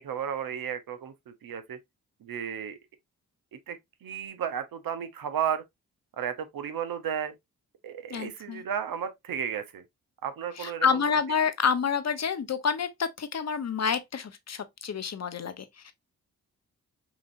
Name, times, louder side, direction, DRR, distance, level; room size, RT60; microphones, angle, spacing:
voice 1, 0.0-1.8 2.2-2.8 3.5-5.6 6.2-7.3 7.8-9.8 10.2-11.0, right 8 dB, 65° right, 0.9 m, -33 dB
voice 2, 8.1-8.6 10.6-15.9, left 6 dB, 45° left, 0.9 m, -28 dB
5.9 x 2.8 x 2.5 m
supercardioid pair, 45°, 37 cm